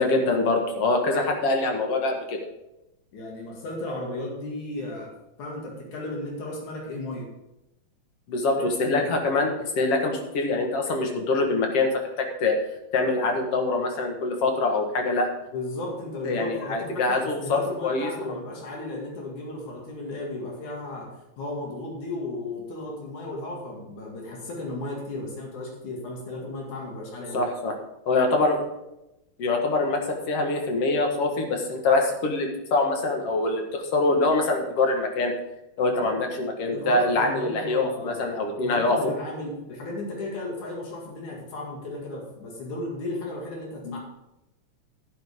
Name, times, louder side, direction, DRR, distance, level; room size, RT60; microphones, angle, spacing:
voice 1, 0.0-2.5 8.3-12.6 12.9-15.3 16.2-18.4 27.3-27.8 28.1-28.7 29.4-35.4 35.8-39.0 43.8-44.0, left 3 dB, 55° left, 3 dB, 2.4 m, -24 dB
voice 2, 3.1-5.1 5.4-7.3 8.6-9.1 15.5-21.1 21.4-27.4 35.9-36.2 36.7-44.0, left 2 dB, 80° left, -1 dB, 3.7 m, -35 dB
11.5 x 11.0 x 3.7 m, 0.91 s
omnidirectional pair, 3.3 m